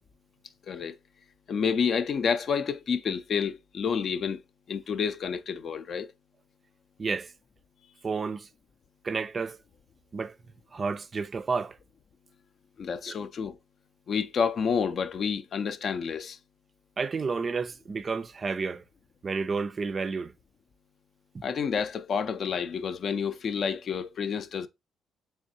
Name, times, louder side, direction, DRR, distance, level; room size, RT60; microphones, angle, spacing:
voice 1, 0.7-1.0 1.5-4.4 4.7-6.1 12.8-13.6 14.1-16.4 21.4-24.7, left 6 dB, 55° left, 0.4 m, -29 dB
voice 2, 7.0-7.3 8.0-8.5 9.0-9.6 10.1-10.4 10.7-11.8 13.1-13.2 17.0-18.8 19.2-20.3 21.3-21.4, right 4 dB, 40° right, 0.3 m, -31 dB
3.5 x 3.2 x 2.7 m
cardioid pair, 90°, 0 cm